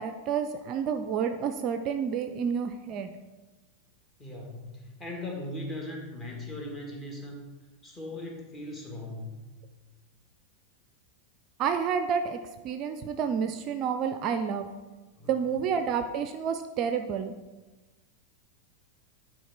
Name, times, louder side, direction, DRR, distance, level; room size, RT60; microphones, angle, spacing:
voice 1, 0.0-3.1 11.6-12.4 12.6-14.7 15.3-17.3, right 7 dB, 35° right, 8 dB, 0.4 m, -29 dB
voice 2, 4.2-7.4 7.8-9.3 15.2-15.3, left 1 dB, 20° left, 0 dB, 1.9 m, -39 dB
10.0 x 4.5 x 4.4 m, 1.2 s
figure-of-eight pair, 90°, 0 cm